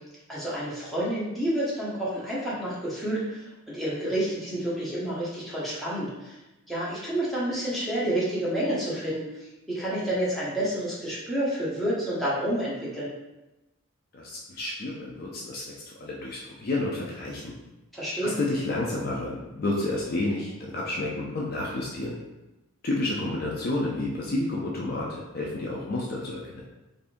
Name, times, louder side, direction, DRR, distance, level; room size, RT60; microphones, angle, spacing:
voice 1, 0.3-6.4 6.7-9.2 9.7-13.1 17.9-18.3, right 1 dB, ahead, -9 dB, 0.8 m, -29 dB
voice 2, 14.1-15.7 16.0-17.5 18.2-22.2 22.8-26.6, left 2 dB, 40° left, -3 dB, 0.4 m, -30 dB
3.5 x 2.6 x 2.5 m, 0.99 s
head